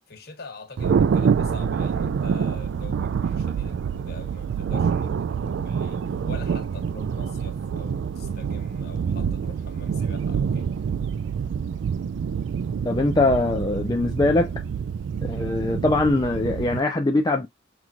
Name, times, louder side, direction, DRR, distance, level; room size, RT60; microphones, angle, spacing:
voice 1, 0.1-10.7, left 3 dB, 55° left, 1.3 m, -44 dB
Thunder, 0.8-16.8, right 6 dB, 60° right, 0.3 m, -26 dB
voice 2, 12.8-14.6 15.2-17.5, left 2 dB, 20° left, 0.4 m, -22 dB
5.9 x 2.5 x 2.4 m
head